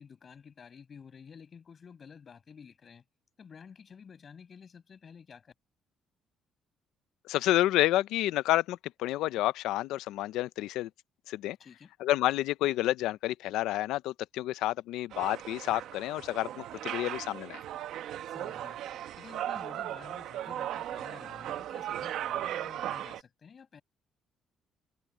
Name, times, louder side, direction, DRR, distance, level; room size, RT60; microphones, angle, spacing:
voice 1, 0.0-3.0 3.4-5.5 11.6-11.9 18.3-18.8 19.2-23.8, left 6 dB, 35° left, 6.2 m, -51 dB
voice 2, 7.3-10.9 11.3-11.6 12.0-17.6, left 15 dB, 90° left, 0.6 m, -29 dB
sound 1, 15.1-23.2, right 11 dB, 70° right, 1.1 m, -37 dB
cardioid pair, 140°, 0 cm